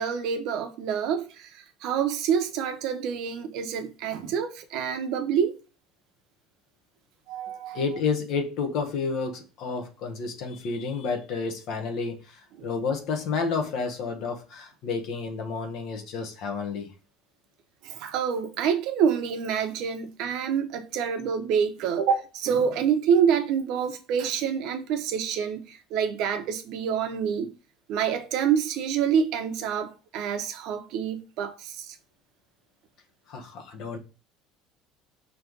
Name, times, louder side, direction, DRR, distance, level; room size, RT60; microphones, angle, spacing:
voice 1, 0.0-5.5 7.3-7.8 12.6-12.7 17.8-27.5 27.9-32.0, right 7 dB, 55° right, 1.0 m, -27 dB
voice 2, 7.7-16.9 33.3-34.0, left 5 dB, 50° left, 1.3 m, -30 dB
5.9 x 3.1 x 5.3 m
cardioid pair, 175°, 0 cm